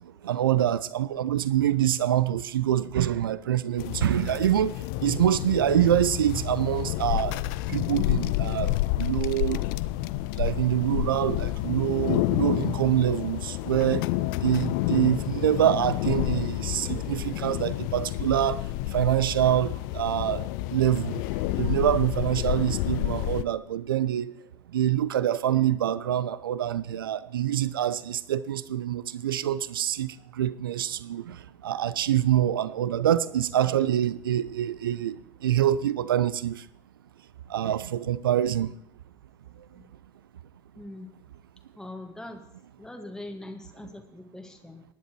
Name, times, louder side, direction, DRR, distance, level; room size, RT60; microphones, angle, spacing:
voice 1, 0.0-7.4 7.7-9.6 10.3-14.0 14.4-21.2 21.6-24.4 24.7-36.7 37.5-38.7, right 11 dB, 75° right, 0.5 m, -25 dB
sound 1, 3.8-23.4, left 16 dB, 60° left, 0.4 m, -29 dB
voice 2, 40.7-41.1 41.7-42.4 42.8-44.8, left 1 dB, 5° left, 1.6 m, -42 dB
20.5 x 10.5 x 3.0 m
figure-of-eight pair, 65°, 12 cm